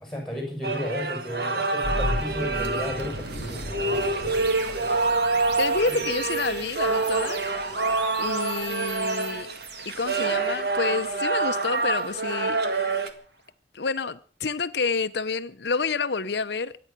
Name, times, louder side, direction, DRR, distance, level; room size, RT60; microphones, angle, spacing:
voice 1, 0.0-4.5 5.9-6.0, left 1 dB, ahead, 7.6 m, -34 dB
sound 1, 0.6-13.1, right 3 dB, 60° right, 1.9 m, -27 dB
sound 2, 1.8-12.9, right 1 dB, 75° right, 3.4 m, -37 dB
voice 2, 5.6-7.4 8.2-9.5 9.9-12.6 13.7-16.8, left 4 dB, 75° left, 0.7 m, -28 dB
24.5 x 9.5 x 6.0 m
head